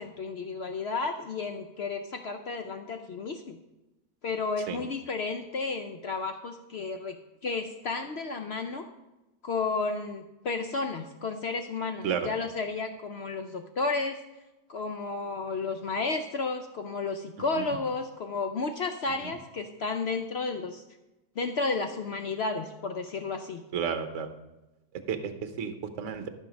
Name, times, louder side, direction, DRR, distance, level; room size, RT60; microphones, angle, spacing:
voice 1, 0.0-3.6 4.2-7.2 7.4-8.8 9.4-14.2 14.7-20.8 21.4-23.6, left 4 dB, 75° left, 6 dB, 0.5 m, -32 dB
voice 2, 23.7-24.3 25.1-26.3, right 7 dB, 55° right, 8 dB, 1.1 m, -32 dB
13.5 x 5.7 x 5.2 m, 1.0 s
omnidirectional pair, 1.8 m